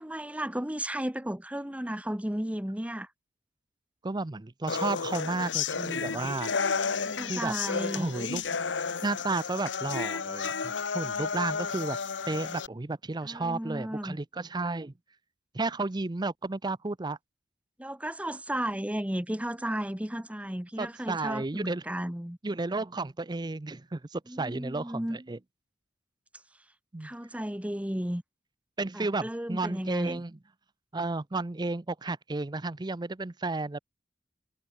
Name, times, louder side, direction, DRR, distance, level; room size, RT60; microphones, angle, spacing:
voice 1, 0.0-3.1 6.8-8.1 13.2-14.2 17.8-22.4 24.3-25.2 27.0-28.2 28.9-30.2, right 1 dB, 5° right, 1.1 m, -34 dB
voice 2, 4.0-6.5 7.3-7.5 7.9-8.4 8.8-12.0 12.3-14.9 15.5-17.2 20.8-21.8 22.4-25.4 26.9-27.1 28.8-30.3 30.9-33.8, right 3 dB, 25° right, 0.6 m, -32 dB
sound 1, 4.7-12.7, left 5 dB, 70° left, 1.0 m, -32 dB
head